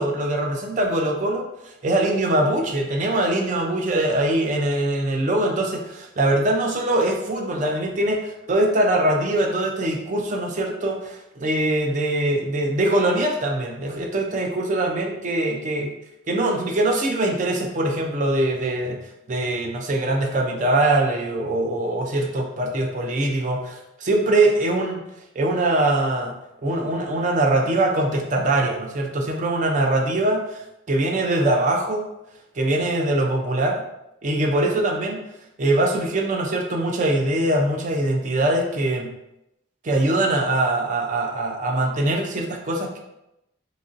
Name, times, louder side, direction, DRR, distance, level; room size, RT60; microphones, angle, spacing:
voice 1, 0.0-1.5 1.8-15.9 16.3-19.0 19.3-25.0 25.4-26.3 26.6-30.6 30.9-32.1 32.6-33.8 34.2-35.2 35.6-39.1 39.8-43.0, right 1 dB, 40° right, 1 dB, 0.4 m, -22 dB
2.9 x 2.6 x 2.5 m, 0.87 s
head